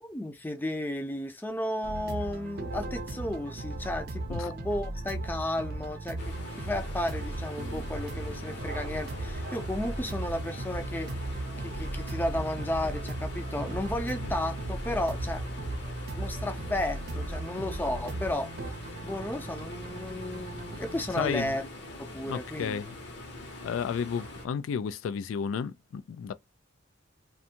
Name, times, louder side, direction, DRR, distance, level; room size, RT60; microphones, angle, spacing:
voice 1, 0.0-15.4 16.1-18.5 19.0-21.6 22.0-22.8, left 1 dB, 10° left, 0.4 m, -33 dB
sound 1, 1.8-21.5, right 2 dB, 55° right, 0.6 m, -36 dB
sound 2, 6.2-24.5, left 2 dB, 60° left, 0.8 m, -44 dB
voice 2, 21.2-21.6 22.3-23.0 23.6-26.3, left 6 dB, 85° left, 0.3 m, -32 dB
2.6 x 2.3 x 2.7 m
head